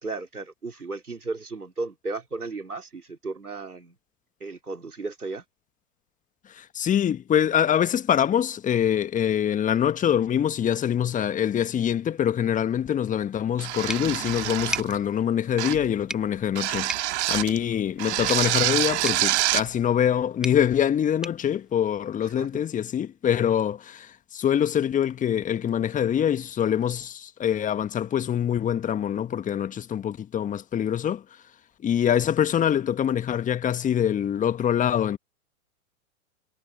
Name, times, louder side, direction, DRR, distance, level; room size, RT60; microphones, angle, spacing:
voice 1, 0.0-4.0 4.4-5.4 22.2-22.6, right 3 dB, 85° right, 4.2 m, -35 dB
voice 2, 6.5-31.2 31.8-35.2, left 9 dB, 15° left, 1.6 m, -24 dB
sound 1, 13.6-15.0 15.6-15.9 16.6-17.6 18.0-19.7, right 16 dB, 50° right, 1.8 m, -26 dB
sound 2, 13.9-22.6, right 1 dB, ahead, 1.3 m, -40 dB
figure-of-eight pair, 105°, 44 cm